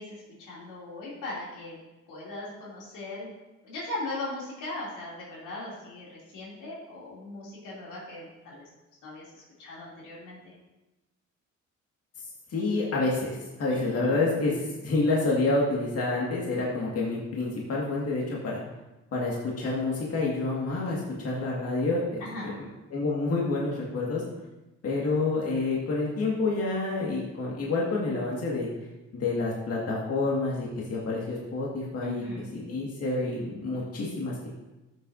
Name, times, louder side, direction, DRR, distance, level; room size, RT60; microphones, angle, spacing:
voice 1, 0.0-1.8 2.1-3.3 3.6-8.6 9.0-10.5 13.7-14.1 22.2-22.6 32.0-32.5, left 2 dB, 90° left, -5 dB, 3.0 m, -39 dB
voice 2, 12.5-14.5 14.8-18.6 19.1-24.2 24.8-28.7 29.1-34.5, left 3 dB, 50° left, -4 dB, 1.9 m, -28 dB
12.5 x 6.7 x 2.7 m, 1.0 s
cardioid pair, 90°, 30 cm